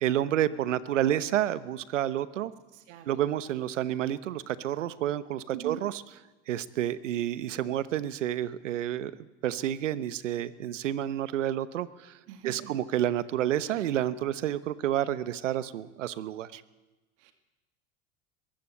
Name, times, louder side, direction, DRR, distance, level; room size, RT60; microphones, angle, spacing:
voice 1, 0.0-2.5 3.1-6.0 6.5-9.1 9.4-12.2 12.4-16.6, right 11 dB, 90° right, 16 dB, 1.1 m, -29 dB
voice 2, 2.7-3.1 5.5-5.8 12.3-12.8 17.2-17.3, right 11 dB, 70° right, 8 dB, 2.1 m, -42 dB
21.5 x 15.5 x 8.5 m, 1.1 s
hypercardioid pair, 95°, 36 cm